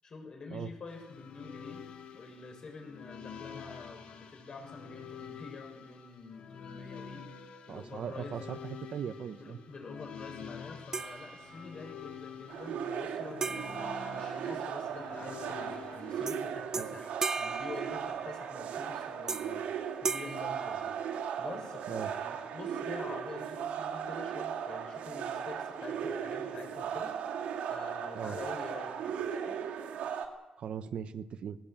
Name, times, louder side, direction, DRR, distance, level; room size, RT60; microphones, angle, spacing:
voice 1, 0.0-1.8 2.1-7.3 7.7-8.4 9.3-27.1 27.7-29.6, left 4 dB, 40° left, 3 dB, 6.6 m, -47 dB
sound 1, 0.9-16.5, left 7 dB, 65° left, 2.7 m, -48 dB
voice 2, 7.7-9.6 16.8-16.9 21.9-22.1 28.1-28.4 30.6-31.6, right 8 dB, 55° right, 11 dB, 1.0 m, -39 dB
sound 2, 10.9-11.9 13.4-15.0 16.3-16.4 16.7-18.6 19.3-19.7 20.0-21.5, right 4 dB, 25° right, 0.7 m, -38 dB
sound 3, 12.5-30.3, right 8 dB, 85° right, 2.8 m, -37 dB
19.5 x 17.5 x 8.9 m, 1.1 s
cardioid pair, 140°, 2 cm